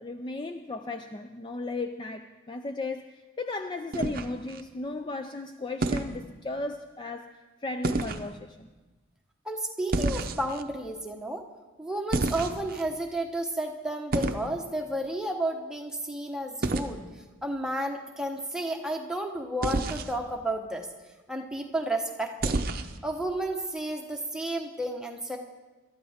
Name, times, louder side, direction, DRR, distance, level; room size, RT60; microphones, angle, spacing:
voice 1, 0.0-8.7, left 2 dB, 25° left, 7 dB, 0.4 m, -36 dB
sound 1, 3.9-4.6 5.8-6.2 7.8-8.3 9.9-10.6 12.1-12.8 14.1-14.5 16.6-16.9 19.6-20.1 22.4-23.0, right 2 dB, 45° right, 0.7 m, -29 dB
voice 2, 9.4-11.4 11.8-17.0 17.4-20.9 21.3-22.5 23.0-25.4, right 1 dB, 5° right, 2 dB, 1.0 m, -32 dB
22.0 x 12.5 x 3.5 m, 1.2 s
head